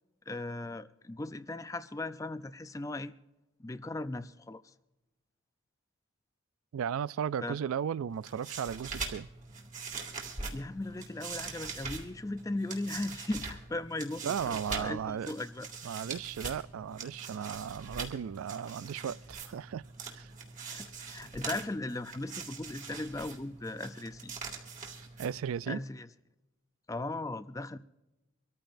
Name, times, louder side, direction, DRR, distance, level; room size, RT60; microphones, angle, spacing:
voice 1, 0.3-3.1 3.6-4.7 7.4-7.6 10.5-15.7 20.6-24.3 25.7-26.1 26.9-27.8, left 2 dB, 15° left, 0.4 m, -38 dB
voice 2, 6.7-9.3 14.2-15.3 15.8-20.3 25.2-25.8, right 8 dB, 90° right, 0.3 m, -35 dB
sound 1, 8.1-25.7, right 4 dB, 35° right, 2.1 m, -43 dB
24.5 x 14.0 x 2.6 m
head